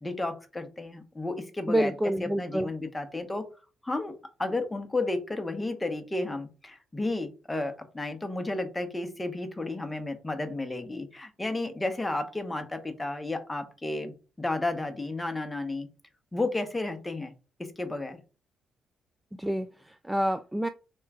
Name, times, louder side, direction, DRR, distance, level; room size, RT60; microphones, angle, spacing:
voice 1, 0.0-3.5 3.8-15.9 16.3-17.3 17.6-18.2, left 2 dB, 15° left, 0.9 m, -32 dB
voice 2, 1.7-2.7 19.4-20.7, right 1 dB, 10° right, 0.3 m, -28 dB
3.5 x 3.0 x 4.7 m
cardioid pair, 90°, 0 cm